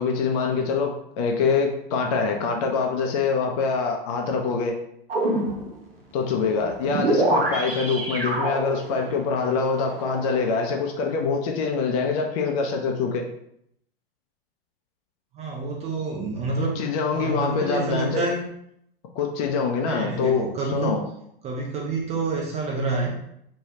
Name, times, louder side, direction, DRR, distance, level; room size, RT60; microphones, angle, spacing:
voice 1, 0.0-4.8 6.1-13.3 16.6-18.2 19.2-21.0, left 5 dB, 40° left, 2 dB, 0.5 m, -25 dB
sound 1, 5.1-5.8 6.5-11.2, right 2 dB, 80° right, 0.7 m, -27 dB
voice 2, 7.0-7.3 15.3-16.9 17.1-18.5 19.8-21.0 21.4-23.1, right 3 dB, 20° right, -2 dB, 0.6 m, -28 dB
3.2 x 2.2 x 2.8 m, 0.73 s
figure-of-eight pair, 95°, 29 cm